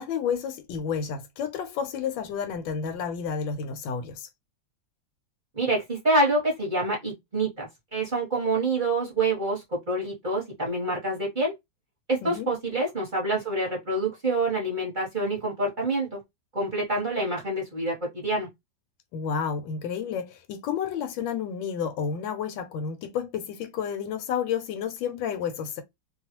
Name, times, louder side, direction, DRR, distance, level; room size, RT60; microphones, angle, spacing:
voice 1, 0.0-4.3 12.2-12.5 19.1-25.8, left 7 dB, 85° left, 1.3 m, -31 dB
voice 2, 5.5-11.5 12.1-16.2 16.5-18.5, right 2 dB, 35° right, 1.0 m, -27 dB
3.0 x 2.3 x 2.8 m
omnidirectional pair, 2.0 m